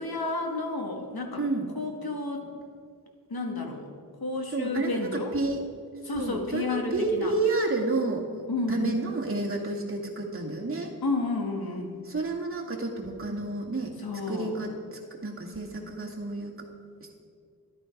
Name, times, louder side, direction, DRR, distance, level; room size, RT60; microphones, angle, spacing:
voice 1, 0.0-1.4 1.7-2.5 3.3-3.9 4.2-5.4 6.0-7.3 8.5-9.0 11.0-12.0 14.0-14.6, left 3 dB, 70° left, 2 dB, 1.8 m, -31 dB
voice 2, 1.4-1.7 4.5-5.6 6.1-8.2 8.7-10.9 12.1-13.9 14.3-16.5, right 3 dB, 35° right, -3 dB, 1.9 m, -30 dB
13.0 x 11.5 x 5.2 m, 2.2 s
wide cardioid pair, 95°, 38 cm